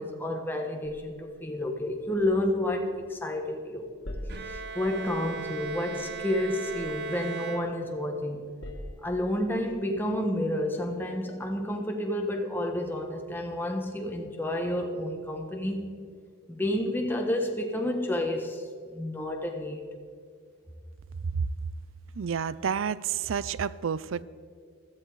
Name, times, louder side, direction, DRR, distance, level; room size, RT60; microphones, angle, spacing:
voice 1, 0.0-3.9 4.5-8.4 9.0-16.0 16.5-18.6 18.9-19.8, left 1 dB, 10° left, 2 dB, 1.3 m, -30 dB
sound 1, 0.8-3.4 3.7-7.9 8.3-9.6, equal, 75° left, 1.9 m, -45 dB
Bowed string instrument, 4.3-8.3, right 5 dB, 55° right, 0.9 m, -38 dB
voice 2, 22.2-24.2, right 7 dB, 85° right, 19 dB, 0.4 m, -29 dB
15.5 x 13.5 x 4.7 m, 2.1 s
head